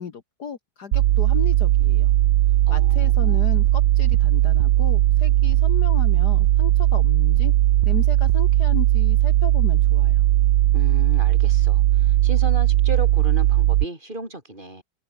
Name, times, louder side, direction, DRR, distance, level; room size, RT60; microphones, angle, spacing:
voice 1, 0.0-2.1 2.7-7.5 7.9-10.2, left 7 dB, 55° left, 1.9 m, -35 dB
sound 1, 0.9-13.9, right 14 dB, 70° right, 1.3 m, -18 dB
voice 2, 2.7-3.5 10.7-14.8, right 1 dB, 25° right, 5.0 m, -35 dB
omnidirectional pair, 2.2 m